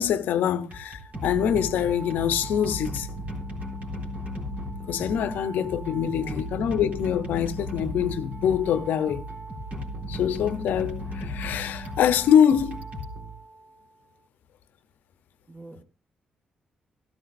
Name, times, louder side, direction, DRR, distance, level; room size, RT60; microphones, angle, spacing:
voice 1, 0.0-3.1 4.9-9.2 10.1-12.8, left 9 dB, 80° left, 0.8 m, -24 dB
sound 1, 0.7-13.8, equal, 55° right, 3.8 m, -35 dB
voice 2, 5.9-6.9 15.5-15.8, right 1 dB, 25° right, 2.0 m, -44 dB
14.5 x 12.5 x 2.6 m
supercardioid pair, 55°, 3 cm